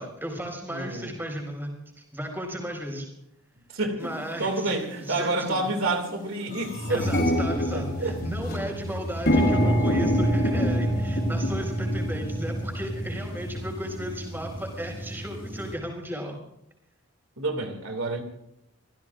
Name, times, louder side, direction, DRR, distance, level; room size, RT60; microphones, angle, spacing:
voice 1, 0.0-1.7 2.1-3.1 4.0-5.7 6.9-16.3, equal, 10° right, 4.7 m, -35 dB
voice 2, 0.7-1.1 3.7-4.1 4.4-7.0 7.7-8.2 17.4-18.2, right 2 dB, 75° right, 2.5 m, -29 dB
sound 1, 4.2-4.3 5.0-5.3 5.7-5.8 6.0-15.7, equal, 50° left, 5.2 m, -27 dB
26.5 x 15.5 x 2.5 m
head